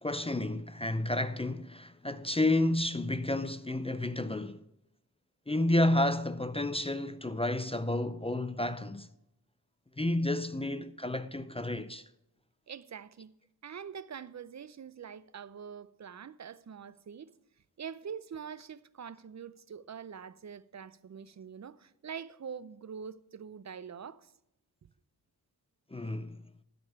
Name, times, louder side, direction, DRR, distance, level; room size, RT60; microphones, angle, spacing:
voice 1, 0.0-4.6 5.5-9.1 10.0-12.0 25.9-26.4, left 1 dB, 15° left, 0.4 m, -31 dB
voice 2, 12.7-13.3 13.6-17.3 17.8-24.3, right 7 dB, 45° right, 0.5 m, -44 dB
12.5 x 5.3 x 6.7 m
wide cardioid pair, 70°, 40 cm